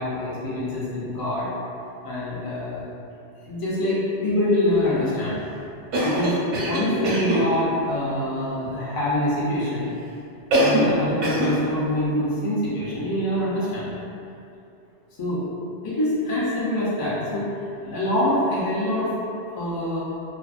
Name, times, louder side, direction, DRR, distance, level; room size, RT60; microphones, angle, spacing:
voice 1, 0.0-1.5 2.0-2.8 3.5-5.5 6.0-6.4 6.7-9.9 10.6-13.9 15.2-15.4 15.8-19.1 19.5-20.0, left 1 dB, 35° left, -9 dB, 0.3 m, -25 dB
Cough, 5.9-7.5 10.5-11.0 11.2-11.6, equal, 85° right, 0.9 m, -22 dB
2.5 x 2.0 x 2.4 m, 2.6 s
omnidirectional pair, 1.2 m